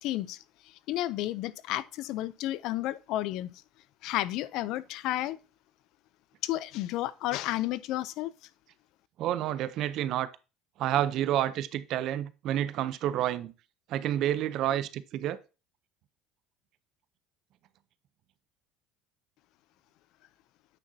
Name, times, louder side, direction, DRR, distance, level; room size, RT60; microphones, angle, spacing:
voice 1, 0.0-3.5 4.0-5.4 6.4-8.3, left 15 dB, 65° left, 0.5 m, -32 dB
voice 2, 9.2-10.3 10.8-13.5 13.9-15.4, right 12 dB, 60° right, 0.6 m, -29 dB
9.0 x 5.9 x 2.7 m
supercardioid pair, 80°, 0 cm